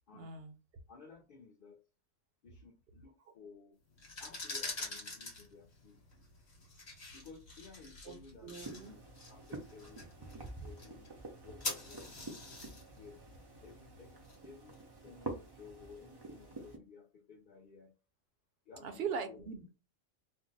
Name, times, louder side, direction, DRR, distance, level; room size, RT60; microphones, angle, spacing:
voice 1, 0.1-0.6 8.0-8.2 8.4-8.9 18.8-19.7, right 6 dB, 60° right, 6 dB, 0.8 m, -40 dB
voice 2, 0.9-1.8 2.4-3.8 4.2-6.0 7.1-9.0 9.3-11.1 11.4-12.1 13.0-13.2 13.6-17.9 18.7-19.5, left 5 dB, 55° left, 0 dB, 0.6 m, -56 dB
sound 1, 3.9-14.8, left 2 dB, 35° left, 1.0 m, -46 dB
sound 2, 8.6-16.8, right 2 dB, 35° right, 0.4 m, -48 dB
2.5 x 2.1 x 3.9 m, 0.31 s
omnidirectional pair, 1.3 m